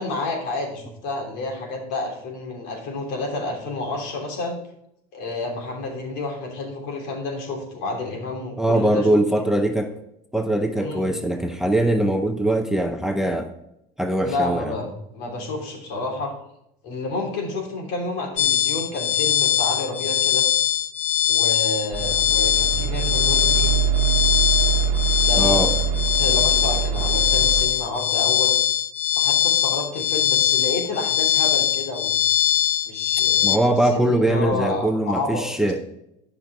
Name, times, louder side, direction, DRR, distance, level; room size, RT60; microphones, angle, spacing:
voice 1, 0.0-4.6 5.1-9.2 10.8-11.1 14.2-16.3 16.8-20.5 21.3-23.8 25.2-25.7 26.2-28.6 29.1-32.2 32.8-33.6 34.1-35.4, left 2 dB, 70° left, 1 dB, 3.1 m, -30 dB
voice 2, 8.6-10.0 10.3-13.5 14.0-14.7 25.3-25.7 33.4-35.8, right 1 dB, 5° right, 6 dB, 0.6 m, -21 dB
sound 1, 18.4-33.6, left 10 dB, 40° left, 0.7 m, -21 dB
sound 2, 21.9-27.7, right 7 dB, 55° right, 1.1 m, -23 dB
11.5 x 5.4 x 4.7 m, 0.81 s
cardioid pair, 130°, 18 cm